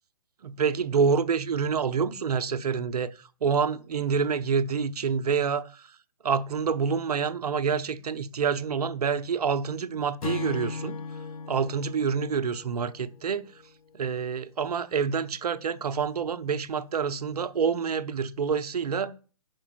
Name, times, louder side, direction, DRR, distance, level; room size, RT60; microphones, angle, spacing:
voice 1, 0.4-6.0 6.2-11.0 11.5-13.5 13.9-19.1, right 6 dB, 75° right, 0.7 m, -27 dB
Acoustic guitar / Strum, 10.2-13.6, left 5 dB, 65° left, 0.7 m, -38 dB
5.2 x 4.8 x 6.1 m
hypercardioid pair, 150°, 20 cm